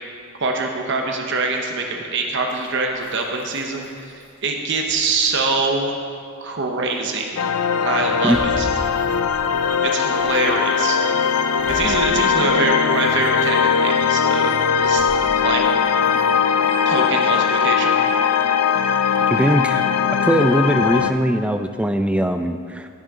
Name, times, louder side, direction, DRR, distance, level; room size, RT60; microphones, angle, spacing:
voice 1, 0.4-6.0 6.4-7.4 7.8-8.7 9.8-11.0 11.7-15.1 15.4-15.6 16.6-18.0, right 3 dB, 55° right, 2 dB, 1.0 m, -24 dB
sound 1, 2.5-4.4 4.9-5.6 6.4-6.5 6.9-7.3 7.8-9.7 10.2-10.7 11.6-12.7 13.2-13.8 14.7-15.6, equal, 70° left, 2.4 m, -38 dB
sound 2, 7.4-21.1, left 7 dB, 90° left, 0.4 m, -19 dB
voice 2, 19.3-19.8 20.2-22.9, equal, 5° right, 7 dB, 0.3 m, -20 dB
16.0 x 6.5 x 3.7 m, 2.3 s
head